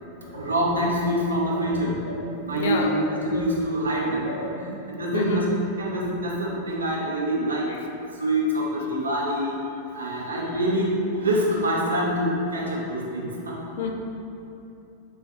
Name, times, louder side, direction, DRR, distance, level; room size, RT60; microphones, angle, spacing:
voice 1, 0.3-2.0 2.4-5.5 5.8-7.7 8.1-9.6 9.9-13.6, right 1 dB, 75° right, -3 dB, 0.5 m, -25 dB
voice 2, 2.5-3.0 3.3-3.5 4.3-4.7 5.1-5.5 7.7-7.8 13.8-13.9, left 3 dB, 55° left, 2 dB, 0.3 m, -29 dB
3.2 x 3.1 x 2.6 m, 2.8 s
figure-of-eight pair, 90°, 0 cm